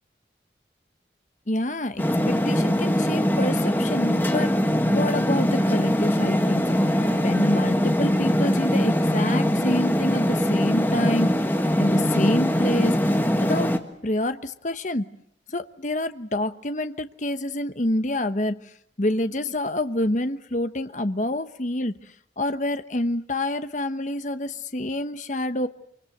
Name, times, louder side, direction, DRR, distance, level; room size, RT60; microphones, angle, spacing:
voice 1, 1.5-4.6 4.9-6.7 7.2-11.3 11.8-13.7 14.0-15.1 15.5-18.7 19.0-21.9 22.4-25.7, left 1 dB, 40° left, 10 dB, 1.1 m, -27 dB
sound 1, 2.0-13.8, equal, 10° left, 1.6 m, -22 dB
26.0 x 24.5 x 7.9 m, 0.69 s
head